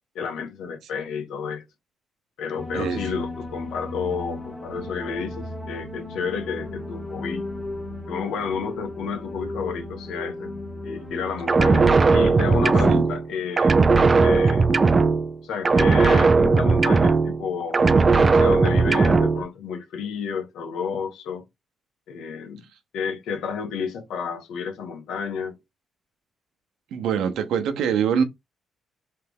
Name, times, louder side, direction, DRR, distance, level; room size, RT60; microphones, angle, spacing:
voice 1, 0.1-1.6 2.4-7.4 8.1-10.5 10.8-13.9 14.2-14.7 15.4-17.8 18.2-21.4 22.1-22.6 22.9-25.6, left 6 dB, 85° left, 1.2 m, -31 dB
sound 1, 2.6-11.8, left 2 dB, ahead, 1.1 m, -35 dB
sound 2, 11.5-13.3 13.6-15.4 15.6-17.5 17.7-19.4, right 4 dB, 25° right, 0.3 m, -18 dB
voice 2, 26.9-28.2, right 7 dB, 85° right, 0.8 m, -24 dB
3.4 x 3.3 x 3.5 m
cardioid pair, 145°, 0 cm